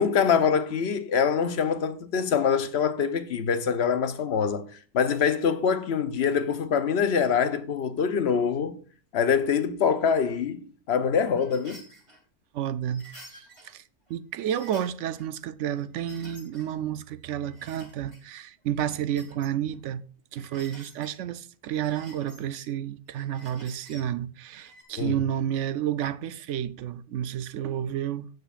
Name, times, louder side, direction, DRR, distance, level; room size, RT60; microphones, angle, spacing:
voice 1, 0.0-4.6 4.9-8.8 9.1-11.8 25.0-25.1, left 6 dB, 65° left, 1.0 m, -24 dB
sound 1, 11.3-12.2 12.9-13.7 14.1-14.2 14.5-15.3 15.7-16.7 17.1-18.2 18.7-19.8 20.4-21.1 21.7-22.7 23.1-24.1 24.5-24.8, right 1 dB, 25° right, 2.6 m, -51 dB
voice 2, 12.5-13.8 14.1-20.0 20.3-28.3, right 10 dB, 80° right, 0.9 m, -31 dB
17.0 x 6.3 x 2.5 m
omnidirectional pair, 1.2 m